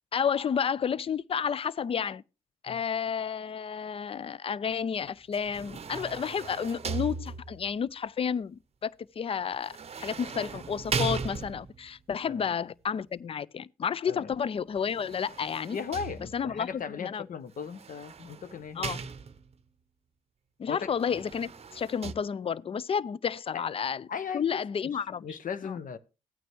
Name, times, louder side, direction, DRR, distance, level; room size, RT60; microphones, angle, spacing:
voice 1, 0.1-2.2 2.6-15.8 16.3-17.3 18.8-19.0 20.6-24.1 24.3-25.2 25.6-25.8, left 7 dB, 35° left, 0.4 m, -31 dB
sound 1, 5.3-7.8 9.6-11.9 14.8-16.6 17.6-19.6 21.0-22.1, right 5 dB, 40° right, 0.8 m, -37 dB
voice 2, 15.7-19.1 20.7-20.9 23.5-23.6 24.1-24.4 25.2-26.0, left 6 dB, 55° left, 0.9 m, -37 dB
14.5 x 9.1 x 3.0 m
hypercardioid pair, 45°, 17 cm